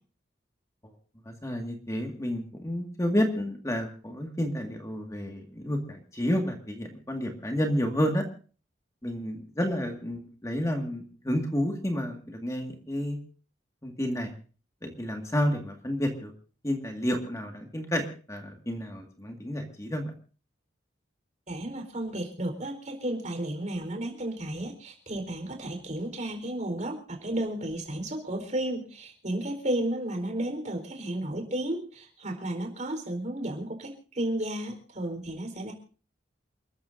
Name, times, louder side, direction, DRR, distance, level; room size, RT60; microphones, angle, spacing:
voice 1, 1.3-8.2 9.0-13.2 13.8-14.3 14.8-16.3 16.6-20.1, equal, 20° left, 3 dB, 2.0 m, -30 dB
voice 2, 21.5-35.7, right 1 dB, 45° right, 3 dB, 4.3 m, -33 dB
29.0 x 13.5 x 2.7 m, 0.39 s
head